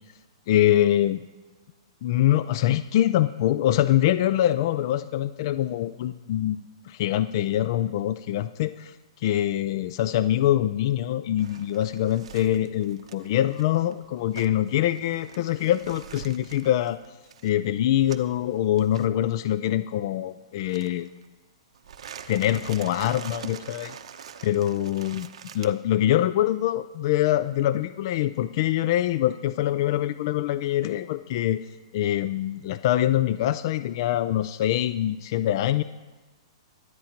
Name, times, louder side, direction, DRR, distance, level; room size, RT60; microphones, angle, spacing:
voice 1, 0.5-1.2 2.0-6.6 6.9-17.0 17.4-21.1 22.3-23.9 24.4-25.3 25.5-31.6 31.9-35.8, left 12 dB, 45° left, 13 dB, 0.3 m, -24 dB
sound 1, 11.4-18.4 18.8-19.1 20.6-21.3 21.7-25.7, right 8 dB, 75° right, 0.8 m, -44 dB
24.0 x 9.1 x 2.9 m, 1.2 s
hypercardioid pair, 155°, 3 cm